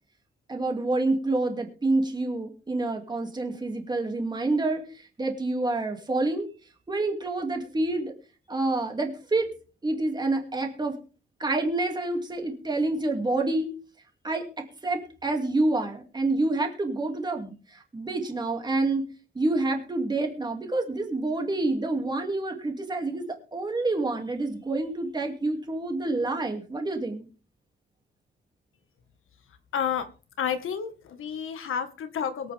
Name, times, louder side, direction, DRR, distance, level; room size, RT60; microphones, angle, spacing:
voice 1, 0.5-6.5 6.9-8.1 8.5-9.5 9.8-11.0 11.4-13.7 14.2-19.1 19.3-27.3, right 2 dB, 20° right, 3 dB, 2.6 m, -28 dB
voice 2, 29.7-30.1 30.4-32.5, left 8 dB, 85° left, 9 dB, 1.7 m, -30 dB
22.5 x 8.7 x 3.6 m, 0.37 s
wide cardioid pair, 175°, 21 cm